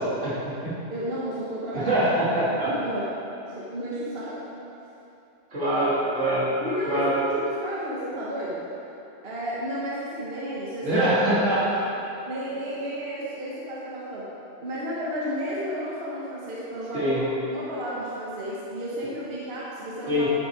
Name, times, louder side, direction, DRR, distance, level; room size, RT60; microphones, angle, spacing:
voice 1, 0.0-0.7 1.7-2.7 5.5-6.5 6.9-7.1 10.8-11.9 16.9-17.2 20.1-20.3, right 1 dB, 80° right, -10 dB, 2.8 m, -24 dB
voice 2, 0.9-1.9 2.4-3.1 3.4-4.4 6.6-8.6 9.2-11.0 12.2-14.3 14.6-20.3, equal, 55° right, -6 dB, 1.3 m, -32 dB
9.9 x 6.1 x 4.7 m, 2.9 s
omnidirectional pair, 1.2 m